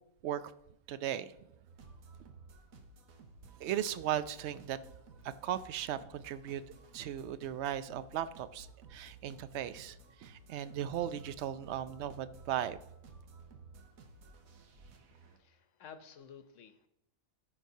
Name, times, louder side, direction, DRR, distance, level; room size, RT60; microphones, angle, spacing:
voice 1, 0.9-1.4 3.6-4.8 5.2-6.6 6.9-12.8, right 11 dB, 65° right, 0.8 m, -37 dB
sound 1, 1.7-15.4, right 3 dB, 85° right, 1.4 m, -56 dB
voice 2, 15.1-16.9, left 7 dB, 70° left, 1.0 m, -53 dB
13.5 x 6.0 x 2.7 m
omnidirectional pair, 1.4 m